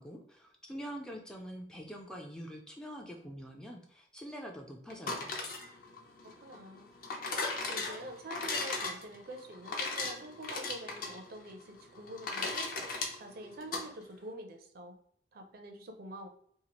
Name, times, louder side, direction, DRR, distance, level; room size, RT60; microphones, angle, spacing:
voice 1, 0.0-5.3, equal, 5° left, 0 dB, 0.3 m, -45 dB
sound 1, 4.9-13.9, left 3 dB, 50° left, 0.5 m, -38 dB
voice 2, 6.2-6.9 7.7-12.8 13.1-15.0 15.3-16.3, right 1 dB, 55° right, 5 dB, 0.5 m, -46 dB
2.8 x 2.3 x 2.9 m, 0.64 s
head